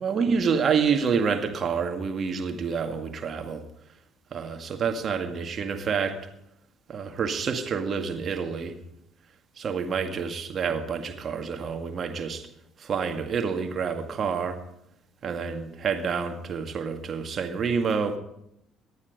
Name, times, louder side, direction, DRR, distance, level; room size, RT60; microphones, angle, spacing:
voice 1, 0.0-3.6 4.3-6.2 6.9-8.7 9.6-12.5 12.8-14.6 15.2-18.2, right 6 dB, 40° right, 6 dB, 2.0 m, -28 dB
18.0 x 12.0 x 5.2 m, 0.78 s
figure-of-eight pair, 50°, 0 cm